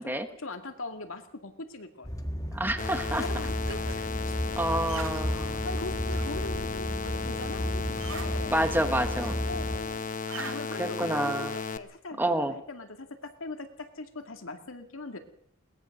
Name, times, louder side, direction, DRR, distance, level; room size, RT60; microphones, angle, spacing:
voice 1, 0.0-2.1 3.1-4.4 5.3-8.6 9.5-10.1 10.4-12.2 12.5-15.2, left 2 dB, 75° left, 6 dB, 2.2 m, -41 dB
sound 1, 2.0-9.8, equal, 15° left, 1.5 m, -33 dB
voice 2, 2.5-3.2 4.6-5.6 8.5-9.4 10.3-11.5 12.2-12.5, right 1 dB, 10° right, 8 dB, 1.3 m, -29 dB
sound 2, 2.8-11.8, left 5 dB, 40° left, 0.9 m, -35 dB
sound 3, 3.3-10.6, right 3 dB, 85° right, 2.3 m, -45 dB
21.5 x 19.0 x 6.6 m, 0.67 s
head